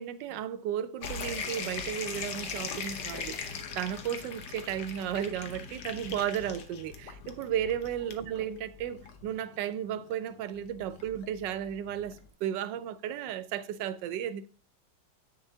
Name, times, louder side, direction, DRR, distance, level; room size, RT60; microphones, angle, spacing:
voice 1, 0.0-3.4 3.7-14.5, right 10 dB, 90° right, 1.3 m, -34 dB
sound 1, 1.0-12.3, left 5 dB, 70° left, 1.5 m, -40 dB
8.2 x 6.6 x 2.7 m
omnidirectional pair, 1.9 m